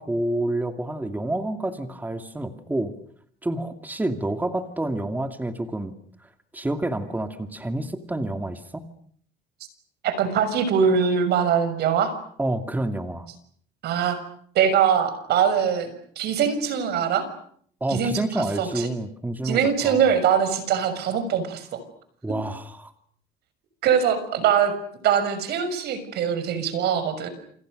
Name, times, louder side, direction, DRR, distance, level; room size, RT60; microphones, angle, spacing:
voice 1, 0.0-2.9 3.4-5.9 6.2-8.8 12.4-13.3 17.8-20.1 22.2-22.9, right 1 dB, 10° right, 7 dB, 2.5 m, -28 dB
voice 2, 10.0-12.1 13.8-14.2 14.5-17.2 17.9-18.9 19.4-21.8 23.8-24.7 25.0-27.3, right 7 dB, 75° right, 11 dB, 6.3 m, -22 dB
28.5 x 28.0 x 6.6 m, 0.62 s
cardioid pair, 110°, 17 cm